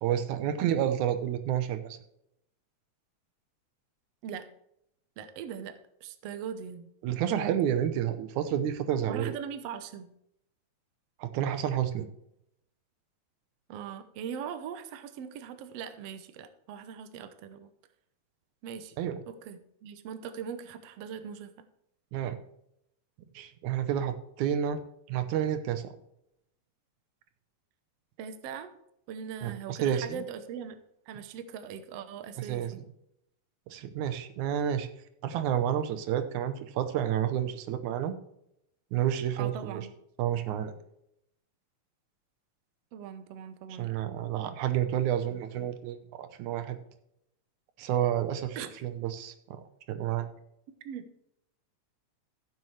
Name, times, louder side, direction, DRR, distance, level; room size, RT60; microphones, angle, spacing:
voice 1, 0.0-2.0 7.0-9.4 11.2-12.1 19.0-19.2 22.1-22.4 23.4-24.8 25.1-25.9 29.4-30.2 32.4-32.7 33.7-34.9 35.2-38.1 38.9-39.9 40.2-40.7 43.8-46.8 47.8-48.6 48.8-49.6 49.9-50.3, right 10 dB, 85° right, 10 dB, 2.3 m, -30 dB
voice 2, 5.2-6.9 9.1-10.1 13.7-17.7 18.6-18.9 19.3-21.5 28.2-28.7 29.1-30.8 31.1-32.9 39.4-39.9 42.9-44.0 48.6-48.7 50.9-51.0, right 7 dB, 65° right, 10 dB, 1.8 m, -40 dB
15.0 x 7.6 x 3.2 m, 0.77 s
omnidirectional pair, 3.3 m